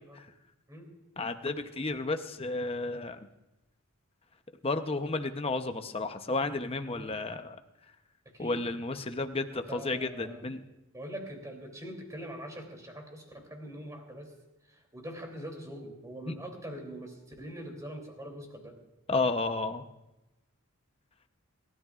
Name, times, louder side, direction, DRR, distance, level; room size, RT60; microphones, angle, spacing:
voice 1, 1.2-3.3 4.6-7.6 8.4-10.6 16.3-16.4 19.1-19.8, left 3 dB, 25° left, 7 dB, 0.8 m, -32 dB
voice 2, 8.2-8.6 8.9-9.1 9.5-10.5 10.9-14.3 14.7-18.8, right 1 dB, 15° right, 2 dB, 3.1 m, -43 dB
29.0 x 13.5 x 2.5 m, 0.98 s
head